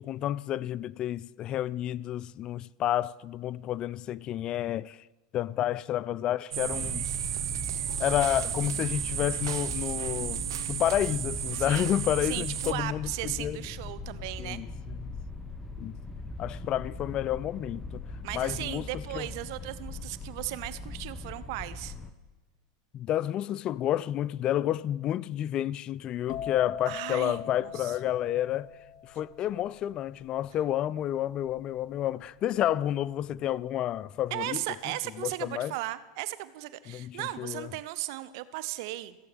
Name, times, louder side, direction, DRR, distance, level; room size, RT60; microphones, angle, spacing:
voice 1, 0.0-5.0 5.3-7.1 8.0-13.6 14.4-14.7 15.0-15.1 15.8-16.0 16.4-18.0 18.3-19.3 22.9-28.7 29.1-34.6 35.2-35.7 36.9-37.7, left 12 dB, 40° left, 0.4 m, -30 dB
sound 1, 6.5-12.7, right 11 dB, 90° right, 0.7 m, -33 dB
sound 2, 6.7-22.1, left 3 dB, 10° left, 1.1 m, -40 dB
voice 2, 11.5-11.9 12.2-14.6 18.2-21.9 26.9-27.9 34.3-39.2, right 16 dB, 65° right, 0.9 m, -36 dB
sound 3, 26.3-33.9 34.1-34.6, left 9 dB, 70° left, 1.0 m, -42 dB
15.5 x 7.8 x 9.1 m
supercardioid pair, 115°, 2 cm